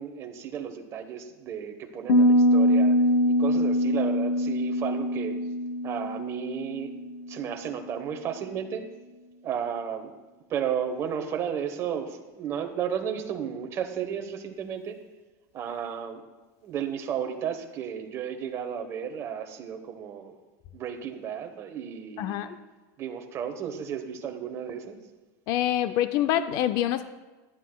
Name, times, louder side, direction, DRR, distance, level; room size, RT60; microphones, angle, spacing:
voice 1, 0.0-2.9 3.4-5.4 5.8-6.9 7.3-8.9 9.4-10.1 10.5-15.0 15.5-16.2 16.6-20.4 20.7-22.5 23.0-25.0, right 8 dB, 30° right, 5 dB, 1.0 m, -33 dB
Piano, 2.1-7.7, equal, 70° left, 0.9 m, -23 dB
voice 2, 22.2-22.6 25.5-27.0, left 12 dB, 45° left, 11 dB, 0.4 m, -26 dB
15.5 x 10.5 x 2.2 m, 1.2 s
supercardioid pair, 160°, 9 cm